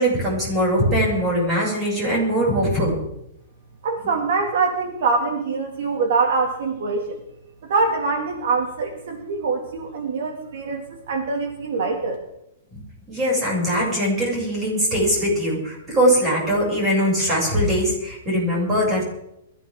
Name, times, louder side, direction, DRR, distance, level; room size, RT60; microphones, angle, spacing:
voice 1, 0.0-3.0 12.7-12.8 13.1-19.1, equal, 10° right, -4 dB, 7.2 m, -21 dB
voice 2, 3.8-7.2 7.6-12.2, right 4 dB, 55° right, 3 dB, 2.3 m, -24 dB
22.5 x 15.0 x 3.8 m, 0.81 s
hypercardioid pair, 175°, 0 cm